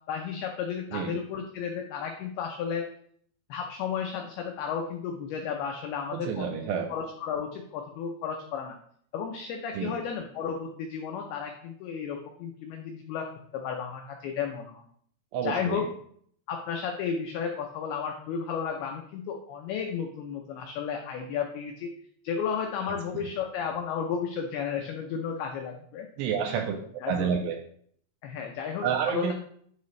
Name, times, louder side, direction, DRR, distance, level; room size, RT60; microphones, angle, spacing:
voice 1, 0.1-2.8 3.5-6.5 6.9-8.7 9.1-14.8 15.4-15.8 16.5-21.9 22.2-26.1 26.5-26.7 27.0-27.3 28.2-29.3, left 7 dB, 90° left, 3 dB, 2.2 m, -33 dB
voice 2, 6.1-6.9 9.7-10.0 15.3-15.9 22.9-23.0 26.2-27.6 28.8-29.3, right 7 dB, 85° right, 4 dB, 2.5 m, -29 dB
9.6 x 4.1 x 3.1 m, 0.63 s
omnidirectional pair, 5.3 m